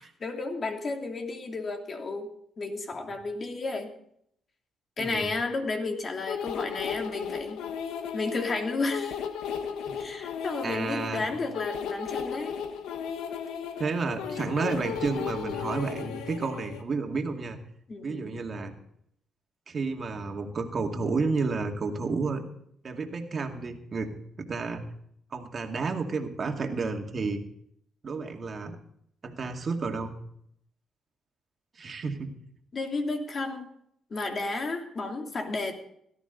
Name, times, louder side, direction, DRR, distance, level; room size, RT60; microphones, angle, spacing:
voice 1, 0.2-2.3 2.6-3.9 5.0-7.6 8.1-9.2 10.0-12.6 17.9-18.3 32.7-33.7 34.1-35.7, left 3 dB, 40° left, 3 dB, 3.0 m, -32 dB
voice 2, 5.0-5.3 10.6-11.3 13.8-17.6 18.0-18.8 19.7-22.4 22.8-24.8 25.3-27.4 28.0-28.8 29.2-30.1 31.8-32.3, right 4 dB, 40° right, 3 dB, 2.3 m, -31 dB
sound 1, 6.3-16.8, left 7 dB, 90° left, 1.3 m, -35 dB
17.5 x 13.5 x 4.0 m, 0.69 s
cardioid pair, 90°, 0 cm